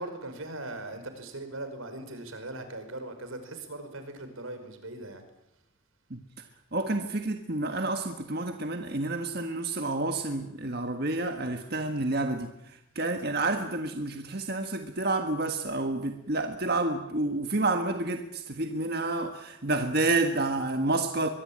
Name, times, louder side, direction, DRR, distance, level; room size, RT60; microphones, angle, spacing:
voice 1, 0.0-5.2, right 2 dB, 85° right, 8 dB, 5.3 m, -39 dB
voice 2, 6.7-21.3, right 2 dB, 50° right, 6 dB, 1.6 m, -29 dB
23.5 x 23.0 x 8.8 m, 0.83 s
head